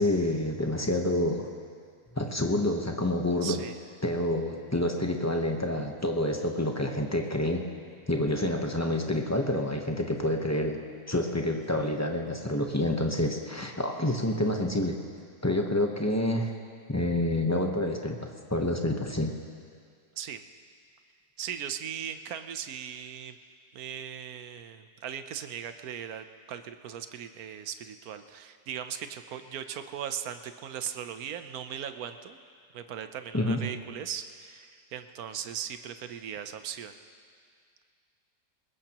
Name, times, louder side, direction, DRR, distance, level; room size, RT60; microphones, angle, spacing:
voice 1, 0.0-1.4 2.2-3.6 4.0-7.6 8.1-10.8 11.1-15.0 15.4-16.5 16.9-18.2 18.5-19.3 33.3-33.6, left 1 dB, 15° left, 2 dB, 0.7 m, -28 dB
voice 2, 3.4-3.8 20.2-20.4 21.4-23.4 23.7-32.4 32.7-37.0, right 9 dB, 65° right, 9 dB, 1.1 m, -38 dB
22.0 x 20.0 x 3.0 m, 2.1 s
omnidirectional pair, 1.8 m